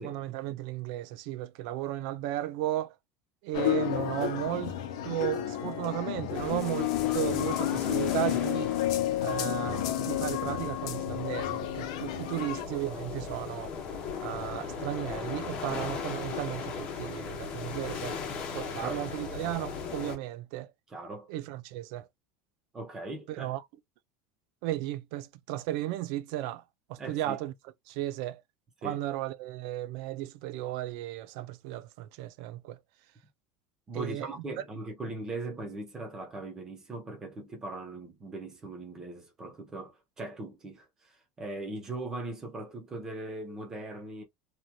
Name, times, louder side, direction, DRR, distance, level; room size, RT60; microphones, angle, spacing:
voice 1, 0.0-2.9 3.4-4.8 5.0-8.7 9.2-13.7 14.2-18.2 18.5-20.7 21.3-22.1 23.3-23.6 24.6-26.6 26.9-27.5 27.9-28.4 28.8-32.8 33.9-34.3, right 14 dB, 65° right, 0.4 m, -35 dB
sound 1, 3.5-12.6, left 13 dB, 90° left, 0.7 m, -31 dB
sound 2, 6.3-20.2, left 5 dB, 35° left, 0.9 m, -38 dB
voice 2, 20.9-21.3 22.7-23.5 27.0-27.4 28.8-29.0 33.9-44.2, right 2 dB, 15° right, 1.0 m, -39 dB
3.0 x 2.6 x 2.2 m
cardioid pair, 165°, 3 cm